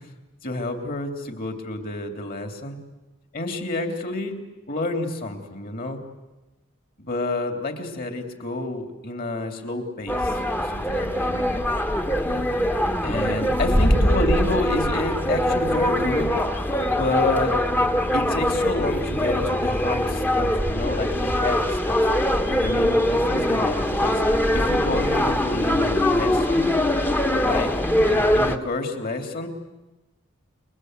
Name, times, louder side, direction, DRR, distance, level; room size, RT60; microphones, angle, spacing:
voice 1, 0.4-2.8 3.3-6.0 7.0-11.4 13.0-16.3 16.8-17.6 18.1-22.1 22.6-24.2 24.5-26.7 27.4-27.8 28.1-29.5, left 2 dB, 45° left, 5 dB, 3.2 m, -29 dB
sound 1, 10.1-28.6, left 1 dB, 10° left, 1.2 m, -22 dB
29.5 x 23.0 x 8.2 m, 1.1 s
head